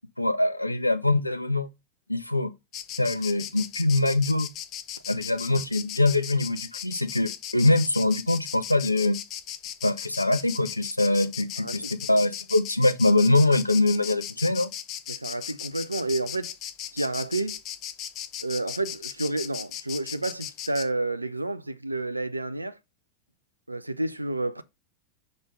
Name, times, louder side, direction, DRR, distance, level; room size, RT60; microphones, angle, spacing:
voice 1, 0.2-1.7 2.1-2.5 3.0-4.5 5.1-9.2 9.8-14.7, left 2 dB, 85° left, 0.6 m, -23 dB
Insect, 2.7-20.9, left 11 dB, 35° left, 0.9 m, -37 dB
voice 2, 11.6-11.9 12.2-12.3 15.1-16.5 16.9-17.6 18.4-22.8 23.7-24.6, right 2 dB, 85° right, 0.6 m, -30 dB
6.1 x 5.3 x 3.8 m
figure-of-eight pair, 90°, 0 cm